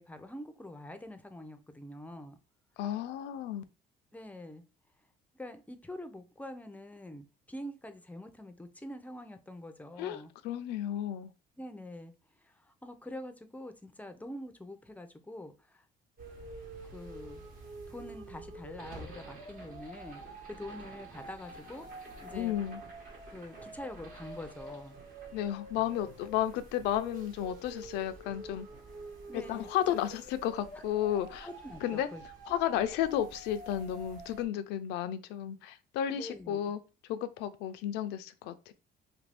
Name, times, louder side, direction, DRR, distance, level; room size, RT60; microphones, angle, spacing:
voice 1, 0.0-2.4 4.1-4.6 5.3-10.3 11.6-12.1 12.4-15.9 16.9-17.5 17.9-20.2 20.5-22.5 23.3-24.9 29.3-30.0 30.7-30.8 31.4-32.2 36.1-36.7, left 1 dB, 10° left, 0.4 m, -45 dB
voice 2, 2.8-3.6 10.0-11.3 22.3-22.8 25.3-28.7 29.3-31.5 31.8-32.1 32.5-36.8 37.1-38.7, left 11 dB, 85° left, 0.4 m, -33 dB
sound 1, 16.2-34.5, right 2 dB, 60° right, 1.1 m, -47 dB
2.7 x 2.5 x 3.3 m
cardioid pair, 110°, 17 cm